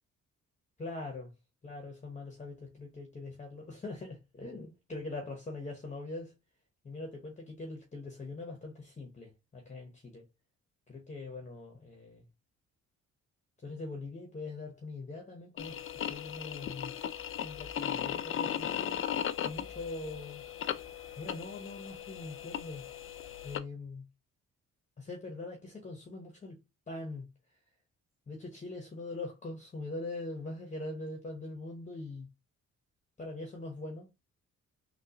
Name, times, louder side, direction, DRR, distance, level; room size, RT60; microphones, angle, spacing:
voice 1, 0.8-1.3 1.6-6.3 6.8-10.3 10.9-12.2 13.6-16.9 17.4-18.9 19.4-20.4 21.2-22.8 23.4-24.1 25.0-26.6 26.9-27.3 28.3-32.3 33.2-34.1, left 2 dB, 25° left, 0.9 m, -42 dB
sound 1, 15.6-23.6, left 9 dB, 45° left, 0.4 m, -37 dB
3.6 x 2.3 x 2.7 m
cardioid pair, 90°, 30 cm